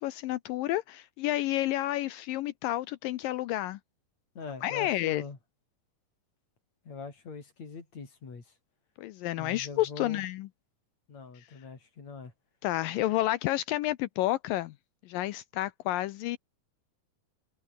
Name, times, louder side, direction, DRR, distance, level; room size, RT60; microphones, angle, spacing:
voice 1, 0.0-3.8 4.6-5.2 9.0-10.5 11.4-11.5 12.6-14.7 15.1-16.4, left 15 dB, 80° left, 2.4 m, -30 dB
voice 2, 4.4-5.4 6.9-8.4 9.4-10.2 11.1-12.3, left 5 dB, 50° left, 5.7 m, -42 dB
omnidirectional pair, 4.2 m